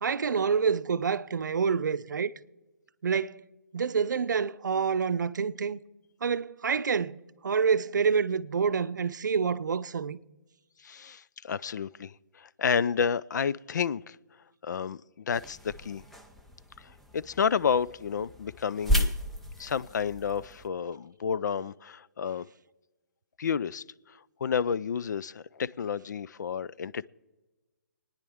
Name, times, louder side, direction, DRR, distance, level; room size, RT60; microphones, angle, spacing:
voice 1, 0.0-2.3 3.0-3.4 3.7-5.8 6.2-10.2, right 6 dB, 90° right, 0.6 m, -27 dB
voice 2, 10.8-14.2 14.6-16.0 17.1-19.1 19.6-22.4 23.4-23.8 24.4-27.1, left 6 dB, 75° left, 0.4 m, -30 dB
sound 1, 15.3-20.7, equal, ahead, 0.5 m, -34 dB
26.0 x 9.8 x 3.5 m
hypercardioid pair, 165°, 10 cm